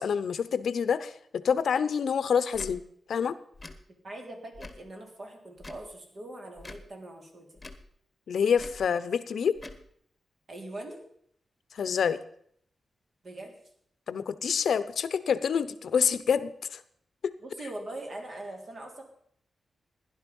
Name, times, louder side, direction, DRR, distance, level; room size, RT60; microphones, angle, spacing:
voice 1, 0.0-2.8 3.1-3.4 8.3-9.6 11.7-12.2 14.1-16.8 17.2-17.3, left 7 dB, 70° left, 15 dB, 0.8 m, -27 dB
Tick / Tick-tock, 2.5-2.7 3.5-3.8 4.5-4.9 5.6-5.9 6.6-6.9 7.6-7.9 8.6-8.8 9.5-9.8, left 2 dB, 20° left, 1.3 m, -44 dB
voice 2, 4.0-7.5 10.5-11.0 13.2-13.5 17.4-19.0, right 1 dB, 45° right, 2 dB, 3.4 m, -41 dB
16.5 x 11.0 x 5.4 m, 0.66 s
wide cardioid pair, 120°, 0 cm